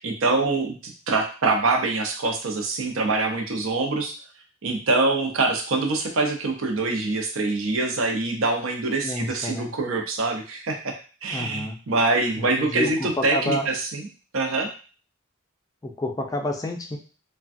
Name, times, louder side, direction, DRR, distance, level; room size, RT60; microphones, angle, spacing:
voice 1, 0.0-4.1 4.6-10.9 11.2-14.1 14.3-14.7, right 3 dB, 85° right, 3 dB, 0.6 m, -24 dB
voice 2, 9.0-9.7 11.3-11.8 12.4-13.7 15.8-17.0, left 1 dB, 20° left, 3 dB, 0.3 m, -29 dB
3.3 x 2.2 x 2.5 m, 0.37 s
head